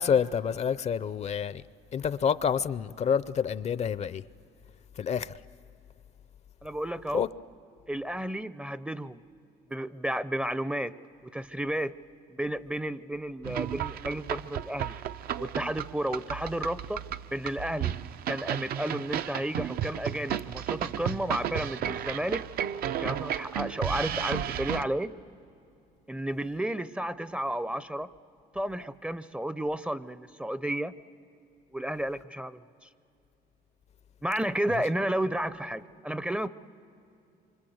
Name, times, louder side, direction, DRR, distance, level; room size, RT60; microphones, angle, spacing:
voice 1, 0.0-1.6 1.9-4.2 5.0-5.3 7.1-7.3 34.7-34.8, left 7 dB, 40° left, 0.5 m, -28 dB
voice 2, 6.6-7.3 7.9-9.2 9.7-10.9 11.2-11.9 12.3-14.9 15.4-17.0 17.3-17.9 18.3-22.4 23.0-25.1 26.1-28.1 28.5-30.9 31.7-32.9 34.2-36.5, right 1 dB, 5° right, 0.5 m, -32 dB
sound 1, 13.4-24.8, right 10 dB, 65° right, 0.6 m, -33 dB
26.5 x 24.5 x 7.9 m
cardioid pair, 110°, 17 cm